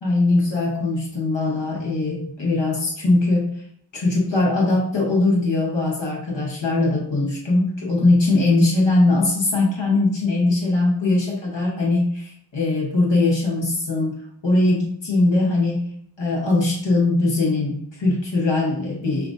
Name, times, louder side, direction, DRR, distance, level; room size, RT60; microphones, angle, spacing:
voice 1, 0.0-3.6 3.9-15.9 16.2-19.3, left 2 dB, 80° left, -4 dB, 1.0 m, -21 dB
5.6 x 2.5 x 2.5 m, 0.66 s
wide cardioid pair, 40°, 44 cm